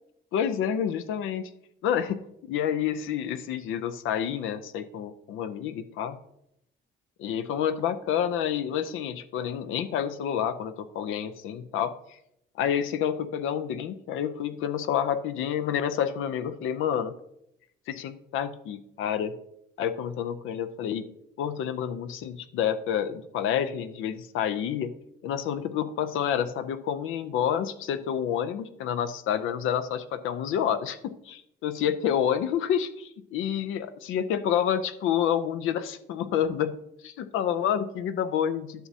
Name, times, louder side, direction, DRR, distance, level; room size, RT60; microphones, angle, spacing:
voice 1, 0.3-1.5 1.8-6.2 7.2-12.2 12.5-17.1 17.9-19.4 19.8-21.1 21.4-24.9 25.2-38.9, left 9 dB, 85° left, 11 dB, 0.6 m, -29 dB
11.5 x 6.1 x 2.7 m, 0.79 s
cardioid pair, 90°, 20 cm